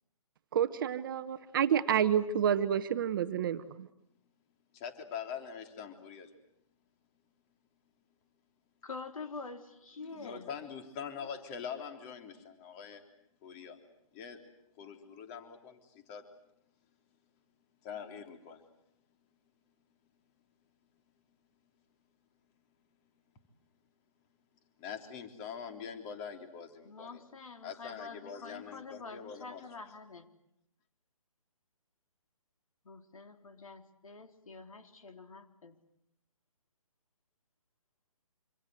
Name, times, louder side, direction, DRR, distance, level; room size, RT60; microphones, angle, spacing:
voice 1, 0.5-3.9, right 9 dB, 35° right, 12 dB, 1.3 m, -29 dB
voice 2, 4.7-6.3 10.0-13.0 13.4-13.8 14.1-14.4 14.8-16.2 17.8-18.6 24.8-27.2 27.6-29.6, left 7 dB, 25° left, 6 dB, 3.5 m, -44 dB
voice 3, 8.8-10.5 26.8-30.3 32.8-35.7, left 4 dB, 70° left, 6 dB, 3.9 m, -46 dB
26.5 x 26.0 x 8.1 m, 0.78 s
figure-of-eight pair, 150°, 18 cm